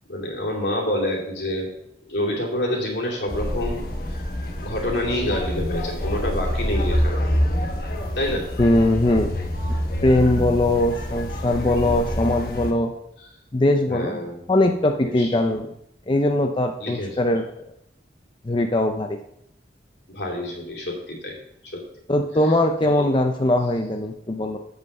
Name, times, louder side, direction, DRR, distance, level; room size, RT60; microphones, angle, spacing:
voice 1, 0.1-1.7 2.1-4.2 4.6-7.3 8.2-8.5 13.9-14.4 15.0-15.3 16.8-17.1 20.1-21.4 21.7-21.8 22.9-23.1, left 1 dB, 75° left, -2 dB, 2.6 m, -27 dB
sound 1, 3.3-12.7, equal, 55° left, 1.3 m, -26 dB
voice 2, 8.6-9.3 10.0-12.9 13.5-15.7 16.1-17.5 18.4-19.2 22.1-24.6, left 1 dB, 25° left, 4 dB, 0.5 m, -21 dB
8.1 x 5.4 x 6.5 m, 0.78 s
head